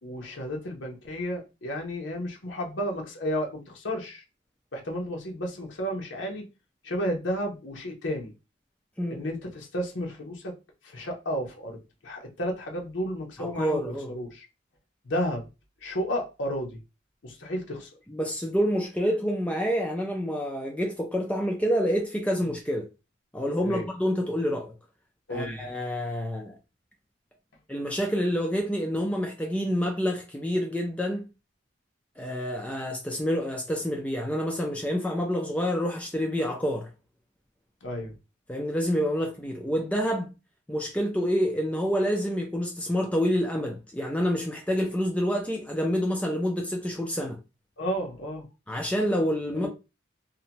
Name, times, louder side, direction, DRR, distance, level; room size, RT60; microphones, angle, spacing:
voice 1, 0.0-4.2 4.7-6.5 6.8-8.3 9.1-10.5 10.8-11.8 12.0-14.4 15.0-15.5 15.8-16.8 17.2-17.9 23.6-23.9 25.3-25.7 37.8-38.1 47.8-48.4 49.5-49.7, equal, 70° left, 0.8 m, -32 dB
voice 2, 13.4-14.1 18.1-22.9 23.3-24.7 25.3-26.5 27.7-31.3 32.2-36.9 38.5-40.3 40.7-47.4 48.7-49.7, equal, 5° left, 0.3 m, -28 dB
2.7 x 2.2 x 2.8 m
head